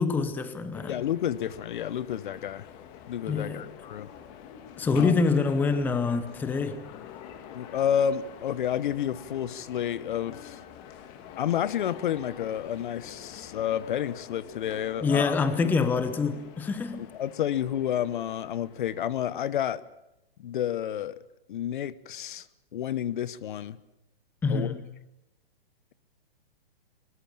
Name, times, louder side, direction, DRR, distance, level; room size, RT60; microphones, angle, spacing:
voice 1, 0.0-1.0 3.3-3.7 4.8-6.9 15.0-17.1 24.4-24.8, left 4 dB, 5° left, 11 dB, 0.8 m, -26 dB
sound 1, 0.7-19.8, left 9 dB, 25° left, 1.9 m, -47 dB
voice 2, 0.9-2.7 3.1-4.1 4.9-5.1 7.5-10.6 11.4-15.4 17.2-19.8 20.4-21.2 21.5-22.4 22.7-23.8 24.5-24.7, left 10 dB, 50° left, 18 dB, 1.0 m, -30 dB
23.5 x 21.0 x 7.5 m, 0.91 s
hypercardioid pair, 150°, 31 cm